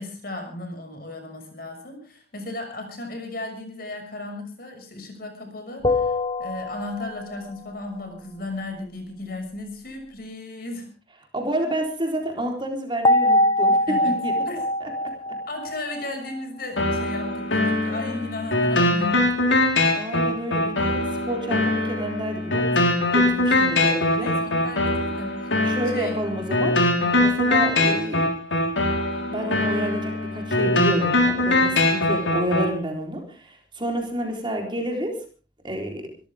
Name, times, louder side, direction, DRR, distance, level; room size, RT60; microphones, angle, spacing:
voice 1, 0.0-10.9 13.9-14.1 14.4-14.6 15.5-19.3 23.5-23.7 24.2-25.5 25.9-26.2 27.0-27.1, left 2 dB, 50° left, 4 dB, 6.2 m, -35 dB
sound 1, 5.8-7.4 13.0-16.4, left 1 dB, 25° left, 0.9 m, -23 dB
voice 2, 11.3-14.4 14.8-14.9 17.9-18.2 19.9-24.3 25.6-26.7 27.1-28.2 29.3-35.1 35.6-36.1, right 1 dB, 25° right, 2 dB, 4.0 m, -29 dB
sound 2, 16.8-32.7, left 2 dB, 85° left, 4.2 m, -22 dB
25.5 x 14.0 x 3.6 m, 0.37 s
head